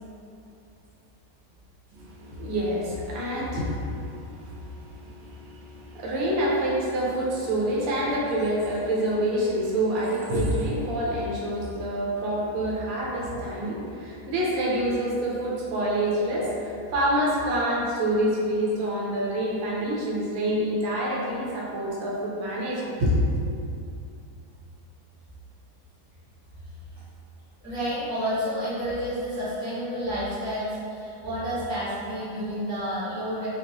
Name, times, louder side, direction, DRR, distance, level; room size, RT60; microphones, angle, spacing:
voice 1, 1.9-23.2, right 1 dB, 65° right, -5 dB, 1.1 m, -27 dB
voice 2, 27.6-33.5, equal, 5° right, -11 dB, 0.9 m, -30 dB
5.2 x 2.1 x 2.9 m, 2.6 s
omnidirectional pair, 1.8 m